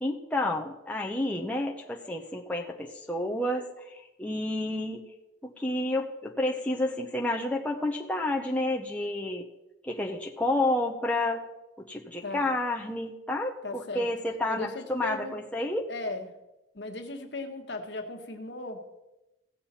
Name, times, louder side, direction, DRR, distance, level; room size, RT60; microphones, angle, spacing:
voice 1, 0.0-5.0 5.4-9.5 9.8-11.5 11.8-15.9, left 1 dB, 10° left, 0 dB, 0.7 m, -30 dB
voice 2, 13.6-14.1 14.5-15.4 15.9-16.3 16.7-18.9, left 2 dB, 65° left, 5 dB, 1.2 m, -37 dB
16.0 x 7.4 x 4.3 m, 0.98 s
head